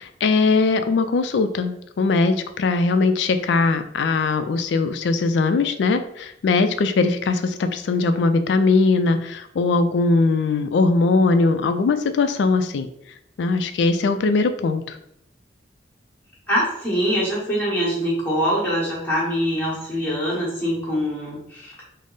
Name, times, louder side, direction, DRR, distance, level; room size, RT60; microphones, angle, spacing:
voice 1, 0.0-12.9 13.4-15.0, left 3 dB, 75° left, 8 dB, 0.3 m, -20 dB
voice 2, 16.5-21.7, equal, 10° left, -8 dB, 1.1 m, -23 dB
3.6 x 2.0 x 3.8 m, 0.75 s
head